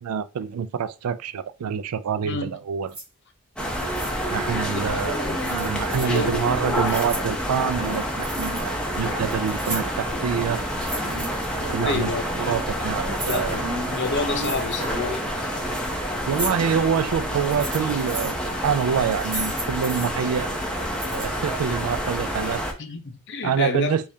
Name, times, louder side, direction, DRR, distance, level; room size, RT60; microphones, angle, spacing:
voice 1, 0.0-3.0 4.3-10.7 11.7-13.7 16.3-20.5 21.1-22.6 23.4-24.1, right 7 dB, 90° right, 0.4 m, -26 dB
voice 2, 2.2-2.6 4.7-5.8 6.1-6.9 11.8-12.2 13.3-15.2 22.8-24.1, left 3 dB, 55° left, 0.6 m, -30 dB
sound 1, 2.9-3.0 3.7-4.1 5.4-6.2 6.7-7.3 7.9-8.7 9.0-10.0 10.7-11.7 12.5-13.4 14.3-15.0 15.5-15.9 16.3-16.5 17.3-18.3 19.0-20.1 20.9-21.3, right 1 dB, 45° right, 2.1 m, -34 dB
sound 2, 3.6-22.7, equal, 5° left, 0.6 m, -28 dB
sound 3, 5.2-5.4 5.9-6.1 6.5-6.7 7.1-7.3 7.8-8.0 8.4-8.7 9.1-9.3 9.7-9.9 10.3-10.7 11.0-11.3 11.6-12.0 12.2-12.6 12.9-15.2, right 1 dB, 65° right, 1.2 m, -35 dB
5.2 x 2.4 x 2.7 m
head